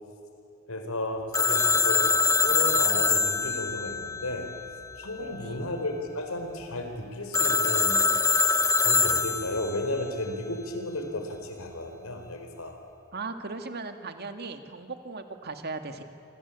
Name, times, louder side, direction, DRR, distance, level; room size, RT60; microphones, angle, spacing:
voice 1, 0.7-4.5 5.0-8.1 8.8-12.8, left 1 dB, 85° left, 5 dB, 4.5 m, -33 dB
Telephone, 1.3-5.0 7.3-9.9, left 4 dB, 15° left, 1.1 m, -24 dB
voice 2, 5.2-5.6 13.1-16.0, right 3 dB, 50° right, 7 dB, 2.2 m, -38 dB
26.5 x 26.5 x 8.5 m, 2.7 s
head